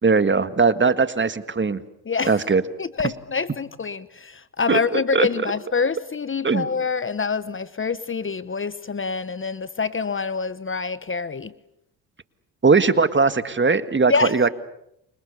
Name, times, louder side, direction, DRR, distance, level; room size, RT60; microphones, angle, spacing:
voice 1, 0.0-1.8 2.3-2.6 4.7-5.3 6.4-6.7 12.6-14.5, right 4 dB, 30° right, 12 dB, 1.8 m, -19 dB
voice 2, 2.1-2.4 2.8-11.5 14.1-14.3, left 5 dB, 30° left, 16 dB, 1.0 m, -26 dB
29.5 x 25.5 x 7.0 m, 0.78 s
cardioid pair, 70°, 40 cm